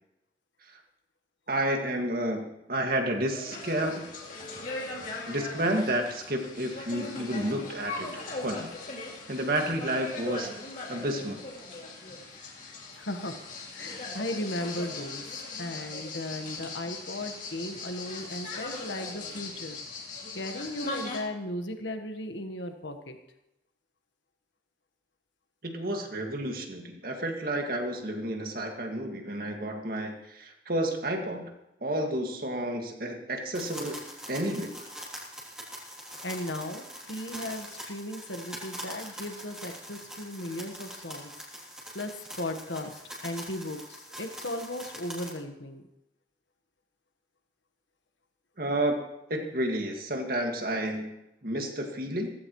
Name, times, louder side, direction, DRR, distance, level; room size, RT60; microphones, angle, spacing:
voice 1, 1.5-4.0 5.3-8.7 9.3-10.5 10.9-11.4 25.6-31.5 31.8-34.0 34.3-34.9 48.6-49.0 49.3-51.2 51.4-52.3, right 1 dB, 50° right, 2 dB, 2.1 m, -31 dB
sound 1, 3.3-21.2, left 3 dB, 45° left, 2.7 m, -39 dB
voice 2, 12.9-13.4 13.7-19.8 20.3-23.2 36.2-41.3 41.9-42.9 43.2-45.8, left 1 dB, 80° left, 6 dB, 1.4 m, -36 dB
sound 2, 33.5-45.3, equal, 5° right, 3.1 m, -43 dB
17.0 x 15.5 x 3.2 m, 0.88 s
head